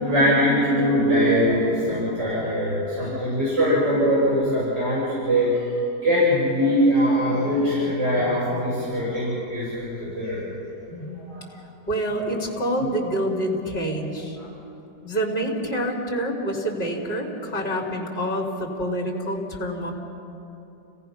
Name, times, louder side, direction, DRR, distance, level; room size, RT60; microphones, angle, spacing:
voice 1, 0.0-5.6 6.0-10.4 11.3-11.4, equal, 85° right, -9 dB, 8.2 m, -22 dB
voice 2, 10.9-11.2 11.9-14.4 15.0-19.9, right 1 dB, 30° left, -3 dB, 3.0 m, -27 dB
30.0 x 18.0 x 5.8 m, 2.8 s
omnidirectional pair, 1.9 m